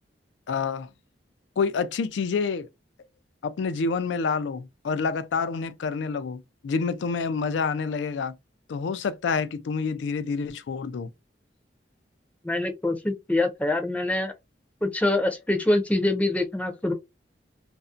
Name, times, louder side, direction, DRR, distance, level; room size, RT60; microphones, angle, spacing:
voice 1, 0.5-0.9 1.6-2.7 3.4-8.3 8.7-11.1, left 5 dB, 90° left, 0.4 m, -28 dB
voice 2, 12.4-14.3 14.8-16.9, left 2 dB, 10° left, 0.5 m, -25 dB
2.4 x 2.1 x 2.4 m
head